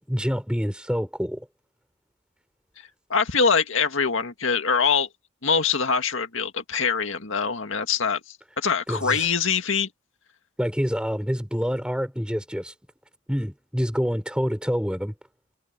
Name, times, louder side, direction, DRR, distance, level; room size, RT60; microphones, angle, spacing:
voice 1, 0.1-1.5 8.9-9.3 10.6-12.7 13.3-15.1, equal, 5° right, 5.8 m, -27 dB
voice 2, 3.1-5.1 5.4-8.2 8.6-9.9, left 5 dB, 70° left, 2.0 m, -23 dB
head